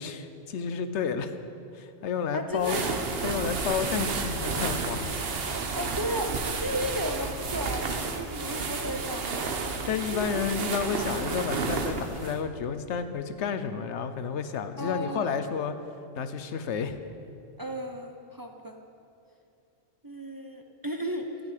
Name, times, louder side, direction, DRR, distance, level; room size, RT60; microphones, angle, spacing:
voice 1, 0.0-1.3 1.7-2.8 3.2-5.1 9.8-15.7 16.2-17.0, left 6 dB, 85° left, 10 dB, 1.1 m, -31 dB
voice 2, 2.3-3.0 5.7-9.5 10.1-10.4 14.8-15.4 17.6-18.8 20.0-21.3, equal, 25° right, 4 dB, 0.6 m, -34 dB
sound 1, 2.6-12.4, right 4 dB, 60° right, 1.1 m, -31 dB
13.0 x 6.2 x 9.4 m, 2.5 s
omnidirectional pair, 1.1 m